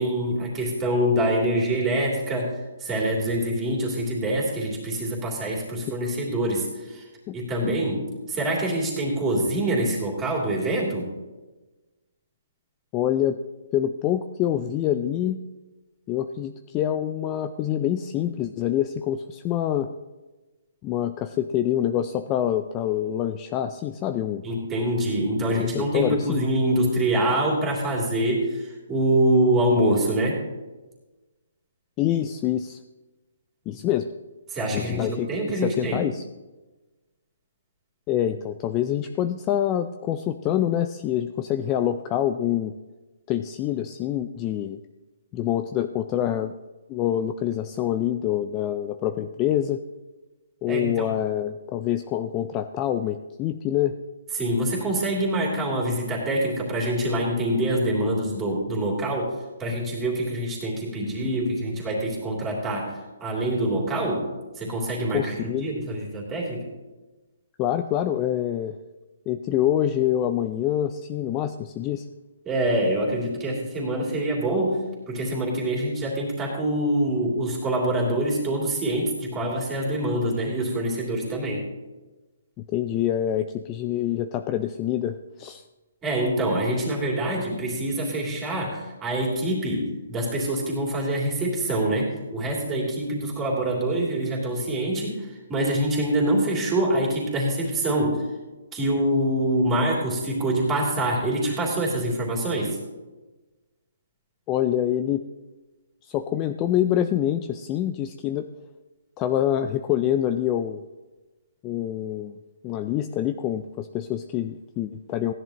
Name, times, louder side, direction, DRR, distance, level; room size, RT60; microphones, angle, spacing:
voice 1, 0.0-2.5 2.8-7.0 7.3-11.1 24.4-30.4 34.5-36.1 50.7-51.1 54.4-64.3 64.6-65.2 65.6-66.6 72.4-81.7 86.0-98.2 98.7-102.8, right 1 dB, 10° right, -2 dB, 3.0 m, -25 dB
voice 2, 12.9-13.4 13.7-15.4 16.1-19.9 20.8-24.4 25.6-26.4 32.0-32.8 33.7-34.1 34.7-35.3 35.6-36.2 38.1-42.7 43.3-44.8 45.3-46.6 46.9-49.8 50.6-54.0 65.1-65.7 67.6-68.8 69.3-72.0 82.7-85.6 104.5-105.2 106.0-108.5 109.2-110.8 111.6-112.3 112.6-115.3, left 11 dB, 20° left, 9 dB, 0.4 m, -26 dB
16.0 x 10.5 x 3.0 m, 1.2 s
hypercardioid pair, 160°, 0 cm